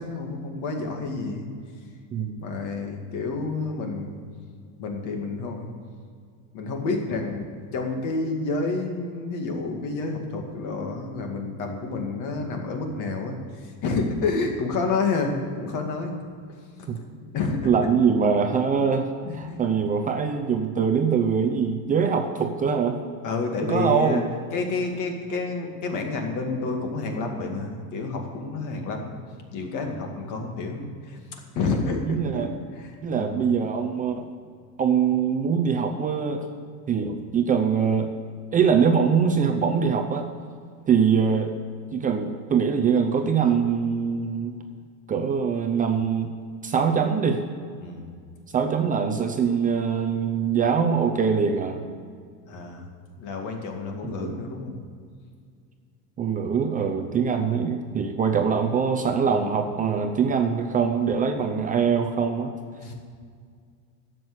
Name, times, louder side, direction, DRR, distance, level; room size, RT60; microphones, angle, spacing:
voice 1, 0.0-1.5 2.4-4.2 4.8-5.7 6.5-7.5 7.7-16.2 16.5-17.7 19.2-19.6 23.2-24.2 24.5-29.2 29.5-31.2 31.5-33.5 36.9-37.1 47.8-48.1 52.5-52.9 53.2-54.8 62.8-62.9, left 3 dB, 45° left, 3 dB, 2.3 m, -29 dB
voice 2, 17.6-19.1 19.3-23.0 23.7-24.2 32.1-32.5 33.0-34.3 34.8-36.5 36.9-38.1 38.5-40.3 40.9-41.5 41.9-44.6 45.1-46.3 46.6-47.4 48.5-51.8 54.0-54.4 56.2-62.5, right 6 dB, 20° right, 5 dB, 0.6 m, -23 dB
12.0 x 7.7 x 8.0 m, 2.1 s
supercardioid pair, 155°, 44 cm